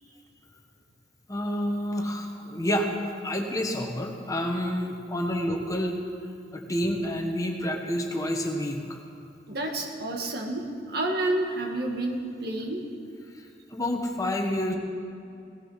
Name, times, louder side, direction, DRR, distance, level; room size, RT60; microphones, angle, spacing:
voice 1, 1.3-6.0 6.5-9.0 13.7-14.7, equal, 20° left, 2 dB, 1.3 m, -29 dB
voice 2, 9.5-12.8, right 2 dB, 60° right, 1 dB, 2.0 m, -30 dB
17.0 x 14.0 x 5.8 m, 2.5 s
head